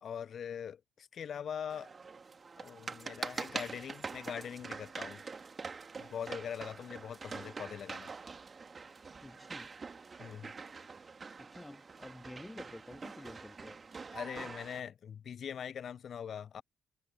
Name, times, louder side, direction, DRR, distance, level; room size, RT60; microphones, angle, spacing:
voice 1, 0.0-1.9 2.6-5.2 6.0-8.1 10.2-10.5 14.1-16.6, left 8 dB, 45° left, 0.8 m, -42 dB
sound 1, 1.7-14.8, right 4 dB, 30° right, 2.3 m, -45 dB
voice 2, 9.2-9.7 11.4-13.8, left 1 dB, 10° left, 2.7 m, -50 dB
figure-of-eight pair, 45°, 0 cm